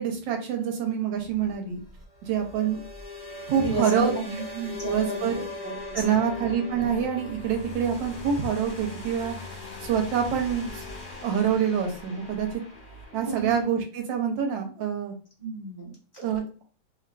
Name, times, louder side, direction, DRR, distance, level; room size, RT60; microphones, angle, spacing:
voice 1, 0.0-1.8 2.2-2.8 3.5-4.4 4.8-5.4 5.9-9.3 9.8-10.8 11.2-12.5 13.1-15.1 16.2-16.6, right 8 dB, 75° right, 3 dB, 1.2 m, -26 dB
sound 1, 1.2-13.6, left 2 dB, 40° left, 1.0 m, -40 dB
voice 2, 3.5-6.4 13.1-13.5 15.4-15.9, right 3 dB, 20° right, -5 dB, 0.7 m, -33 dB
3.2 x 2.4 x 2.2 m, 0.37 s
omnidirectional pair, 2.2 m